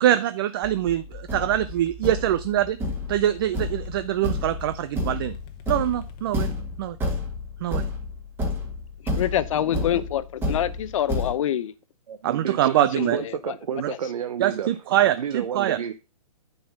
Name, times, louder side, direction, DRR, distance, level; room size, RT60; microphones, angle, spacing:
voice 1, 0.0-2.8 3.1-5.3 5.7-7.0 7.6-7.8 12.2-13.2 13.8-13.9 14.4-15.8, right 12 dB, 40° right, 0.4 m, -24 dB
sound 1, 0.6-7.0, left 5 dB, 25° left, 1.1 m, -47 dB
Thump thud, 0.9-1.0 1.3-11.3, left 2 dB, 10° right, 1.7 m, -30 dB
voice 2, 9.0-11.7 12.8-13.5 13.9-14.0, left 10 dB, 55° left, 0.8 m, -26 dB
voice 3, 12.1-15.9, right 8 dB, 70° right, 0.8 m, -31 dB
9.8 x 4.3 x 5.8 m
hypercardioid pair, 150°, 20 cm